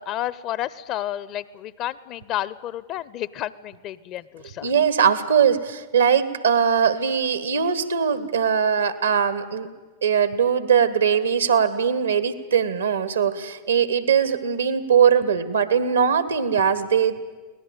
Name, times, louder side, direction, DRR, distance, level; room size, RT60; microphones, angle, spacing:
voice 1, 0.0-4.7, left 12 dB, 40° left, 19 dB, 0.8 m, -31 dB
voice 2, 4.6-9.7 10.0-17.4, right 7 dB, 75° right, 14 dB, 1.5 m, -21 dB
24.0 x 18.0 x 9.1 m, 1.3 s
figure-of-eight pair, 90°, 0 cm